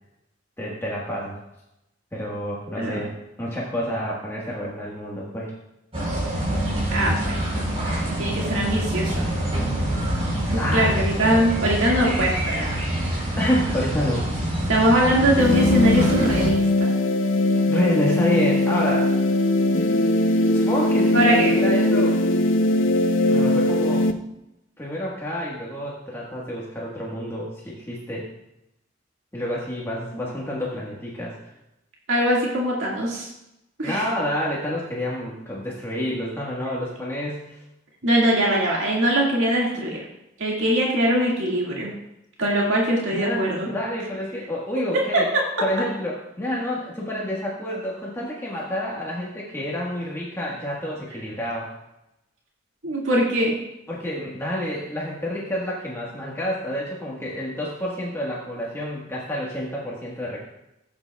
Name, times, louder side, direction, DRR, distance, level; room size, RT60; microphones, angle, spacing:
voice 1, 0.6-1.4 2.1-5.5 10.6-11.0 13.4-14.3 17.7-19.1 20.5-22.2 23.3-24.1 24.8-28.3 29.3-31.4 33.8-37.6 43.1-45.3 45.6-51.7 53.9-60.4, equal, 15° left, -5 dB, 1.4 m, -28 dB
sound 1, 5.9-16.5, right 1 dB, 30° right, 4.1 m, -26 dB
voice 2, 6.9-7.4 8.1-9.3 10.5-12.8 14.7-16.9 21.1-21.5 32.1-33.3 33.8-34.1 38.0-40.0 40.4-41.9 42.4-43.7 52.8-53.5, right 1 dB, 80° right, -4 dB, 2.0 m, -22 dB
sound 2, 15.4-24.1, left 1 dB, 80° left, 0.7 m, -20 dB
15.5 x 8.8 x 2.3 m, 0.88 s
head